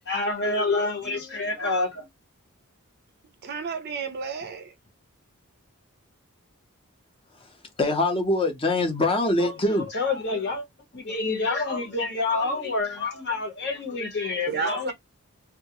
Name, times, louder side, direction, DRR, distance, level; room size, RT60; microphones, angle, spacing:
voice 1, 0.1-2.1 9.4-9.5 9.9-10.6 10.9-14.9, left 3 dB, 55° left, 0.9 m, -27 dB
voice 2, 3.4-4.7 14.5-14.9, right 5 dB, 45° right, 0.4 m, -31 dB
voice 3, 7.8-9.9, left 2 dB, 25° left, 0.6 m, -23 dB
2.3 x 2.1 x 2.7 m
head